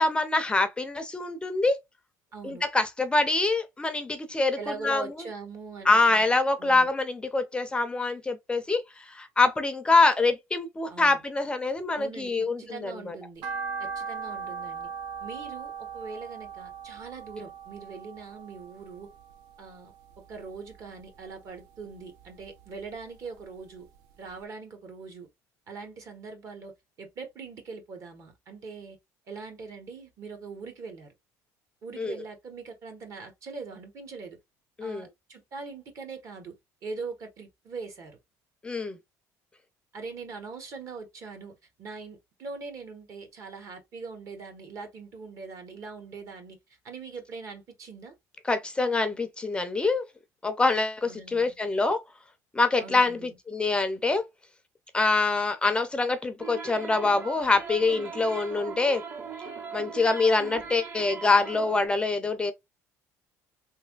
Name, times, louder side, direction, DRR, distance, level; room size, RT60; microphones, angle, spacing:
voice 1, 0.0-1.8 2.4-4.6 4.8-5.3 5.9-13.1 32.0-32.2 34.8-35.1 38.6-39.0 48.4-50.0 50.4-52.0 52.5-54.2 54.9-59.0 59.7-62.5, left 3 dB, 15° left, 0.4 m, -25 dB
voice 2, 2.3-2.6 4.6-6.3 6.6-6.9 10.9-11.2 11.9-13.5 13.8-14.9 15.2-19.1 19.6-19.9 20.3-23.9 24.2-25.3 25.7-26.7 27.0-29.0 29.3-31.1 31.8-34.4 34.8-36.5 36.8-38.2 39.9-46.6 46.8-48.1 51.0-51.5 52.8-53.4, right 4 dB, 50° right, 1.0 m, -41 dB
sound 1, 13.4-19.7 20.1-21.2 21.6-23.0 23.4-23.5 24.0-24.1 24.3-24.4, right 5 dB, 80° right, 0.4 m, -39 dB
sound 2, 56.4-61.9, right 5 dB, 30° right, 0.7 m, -39 dB
3.2 x 2.6 x 2.3 m
cardioid pair, 115°, 7 cm